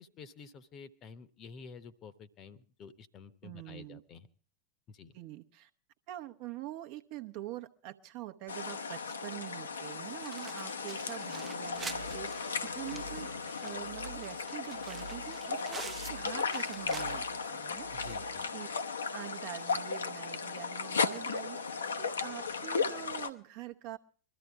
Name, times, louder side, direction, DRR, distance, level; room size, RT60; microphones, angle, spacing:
voice 1, 0.0-4.3 4.9-5.1 17.9-18.5, left 5 dB, 30° left, 14 dB, 0.9 m, -51 dB
voice 2, 3.4-4.0 5.1-5.7 6.1-13.3 13.6-17.9 18.5-18.7 19.0-24.0, right 15 dB, 45° right, 7 dB, 0.8 m, -45 dB
sound 1, 8.5-23.3, left 5 dB, 70° left, 0.8 m, -36 dB
sound 2, 10.2-17.5 17.8-17.9 18.3-18.4 19.6-19.7, right 5 dB, 15° right, 0.6 m, -48 dB
sound 3, 11.7-18.7, right 3 dB, 80° right, 0.7 m, -50 dB
22.0 x 13.5 x 3.5 m, 0.40 s
figure-of-eight pair, 90°, 0 cm